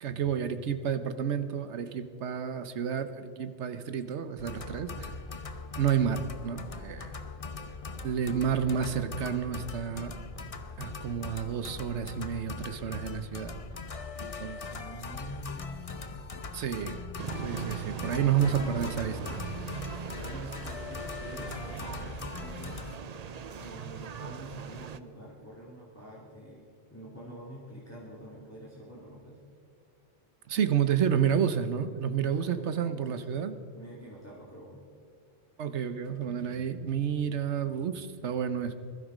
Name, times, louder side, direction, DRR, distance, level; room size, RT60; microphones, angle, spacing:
voice 1, 0.0-5.2 5.8-7.2 8.0-10.1 10.8-13.5 14.2-14.9 16.5-17.0 17.4-19.2 30.5-33.6 35.6-38.7, right 8 dB, 80° right, 11 dB, 1.2 m, -30 dB
sound 1, 4.4-23.0, left 4 dB, 35° left, 0.7 m, -41 dB
voice 2, 14.8-16.5 18.1-19.4 20.2-22.8 23.6-26.6 26.9-29.4 32.2-33.1 33.7-34.8, equal, 15° left, -5 dB, 2.5 m, -46 dB
sound 2, 17.2-25.0, right 7 dB, 45° right, 0.6 m, -40 dB
21.0 x 12.5 x 5.0 m, 2.3 s
omnidirectional pair, 1.1 m